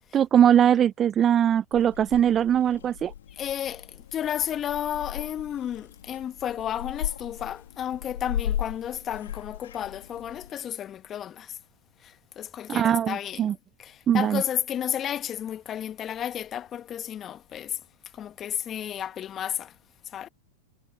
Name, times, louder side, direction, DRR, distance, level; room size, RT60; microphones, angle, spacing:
voice 1, 0.1-3.1 12.7-13.5 14.1-14.4, right 9 dB, 30° right, 0.5 m, -21 dB
Purr / Meow, 1.7-10.5, left 11 dB, 70° left, 1.8 m, -37 dB
voice 2, 3.3-11.6 12.0-13.5 13.8-17.8 18.1-19.7 20.0-20.3, left 10 dB, 30° left, 1.7 m, -32 dB
hypercardioid pair, 95°, 0 cm